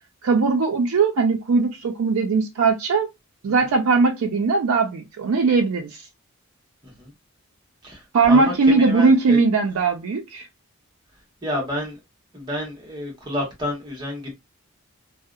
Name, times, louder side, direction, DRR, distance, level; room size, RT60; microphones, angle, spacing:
voice 1, 0.2-3.1 3.4-6.0 8.1-10.5, right 4 dB, 85° right, 0.4 m, -19 dB
voice 2, 8.3-9.4 11.4-12.0 12.3-14.3, left 1 dB, 20° right, 1.0 m, -29 dB
2.6 x 2.0 x 2.3 m
head